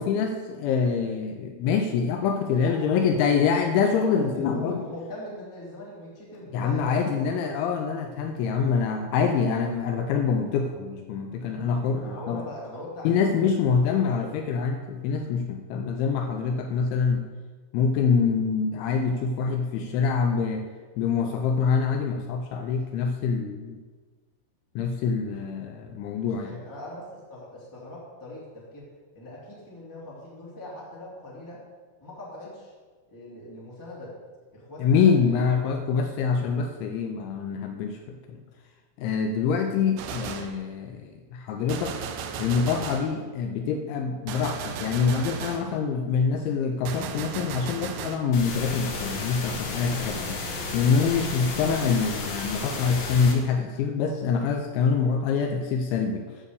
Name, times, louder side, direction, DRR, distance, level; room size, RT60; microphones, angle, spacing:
voice 1, 0.0-4.8 6.5-12.5 13.0-17.3 17.7-20.7 21.0-23.8 24.8-26.6 34.8-38.4 39.0-42.1 42.4-50.4 50.7-56.3, left 6 dB, 85° left, 4 dB, 2.8 m, -25 dB
voice 2, 2.5-7.5 11.4-14.3 22.3-22.8 25.2-25.3 26.1-28.9 29.1-31.6 32.0-32.7 33.1-34.1 34.5-35.4 35.8-36.0, left 1 dB, 10° left, -6 dB, 1.1 m, -41 dB
Gunshot gunfire, 40.0-40.6 41.7-43.2 44.3-45.7 46.9-48.3, right 6 dB, 80° right, 2.5 m, -35 dB
sound 1, 48.3-53.3, left 3 dB, 65° left, 3.6 m, -33 dB
9.8 x 6.8 x 6.7 m, 1.4 s
omnidirectional pair, 5.9 m